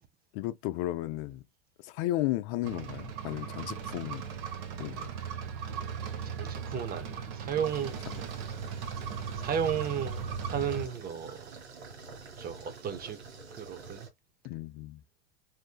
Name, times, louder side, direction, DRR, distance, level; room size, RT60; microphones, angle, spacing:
voice 1, 0.3-1.4 1.8-4.2 4.8-5.1 14.4-15.0, left 15 dB, 55° left, 0.5 m, -34 dB
sound 1, 2.6-10.8, right 6 dB, 60° right, 1.0 m, -37 dB
voice 2, 6.2-8.0 9.4-11.5 12.4-13.2 13.6-14.1, right 8 dB, 30° right, 0.7 m, -34 dB
sound 2, 7.6-14.1, right 4 dB, 85° right, 1.5 m, -48 dB
3.6 x 2.7 x 2.4 m
hypercardioid pair, 105°, 31 cm